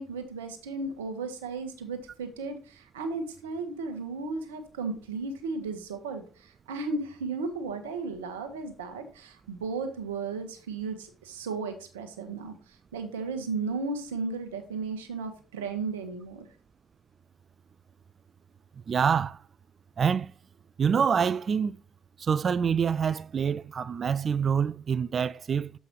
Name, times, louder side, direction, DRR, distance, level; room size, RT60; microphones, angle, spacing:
voice 1, 0.0-12.5 12.9-16.5, right 4 dB, 80° right, 1.0 m, -35 dB
voice 2, 18.9-19.4 20.0-20.3 20.8-21.8 22.2-25.7, right 7 dB, 40° right, 0.3 m, -26 dB
7.4 x 5.3 x 3.0 m
figure-of-eight pair, 50°, 0 cm